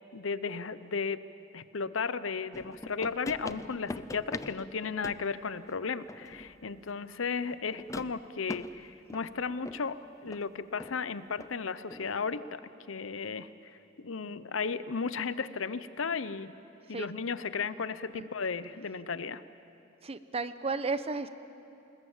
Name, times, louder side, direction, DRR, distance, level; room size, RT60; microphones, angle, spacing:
voice 1, 0.1-1.2 1.5-12.6 12.9-16.5 16.9-19.4, left 5 dB, 85° left, 14 dB, 0.8 m, -35 dB
sound 1, 2.5-5.4 6.1-6.7 7.7-9.9 10.3-10.5 10.8-11.0 11.4-11.6 11.9-12.1, left 2 dB, 15° left, 0.5 m, -43 dB
voice 2, 20.0-21.3, right 3 dB, 30° right, 12 dB, 0.8 m, -33 dB
28.0 x 20.5 x 7.3 m, 2.8 s
head